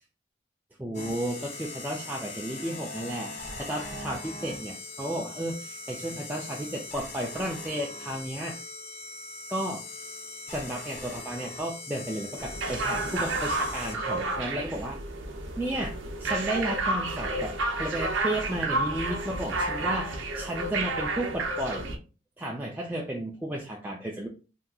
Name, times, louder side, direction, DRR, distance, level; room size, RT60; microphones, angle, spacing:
voice 1, 0.8-8.6 9.5-9.8 10.5-15.0 15.6-21.9 22.4-24.3, right 1 dB, 10° right, -2 dB, 0.3 m, -33 dB
sound 1, 0.9-14.4, left 2 dB, 35° left, 0.7 m, -41 dB
sound 2, 12.4-22.0, right 2 dB, 80° right, 0.6 m, -31 dB
3.6 x 2.7 x 2.3 m, 0.33 s
head